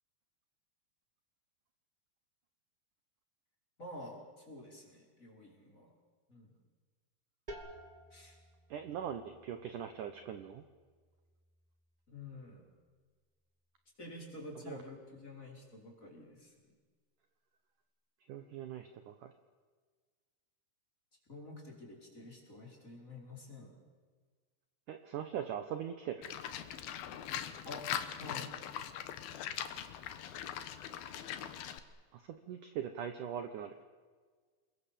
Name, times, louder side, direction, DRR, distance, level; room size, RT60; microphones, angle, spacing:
voice 1, 3.8-5.9 6.3-6.5 8.1-8.4 12.1-12.6 14.0-16.8 21.3-23.8 27.6-27.8 28.2-28.5, left 2 dB, 15° left, -1 dB, 5.1 m, -49 dB
sound 1, 7.5-13.0, right 1 dB, 15° right, 1.9 m, -55 dB
voice 2, 8.7-10.6 14.7-14.8 18.3-19.3 24.9-26.3 32.1-32.2 32.5-33.7, right 9 dB, 75° right, 8 dB, 1.9 m, -41 dB
Livestock farm animals working animals, 26.2-31.8, left 10 dB, 65° left, 2.8 m, -41 dB
28.5 x 22.5 x 7.5 m, 1.5 s
omnidirectional pair, 5.3 m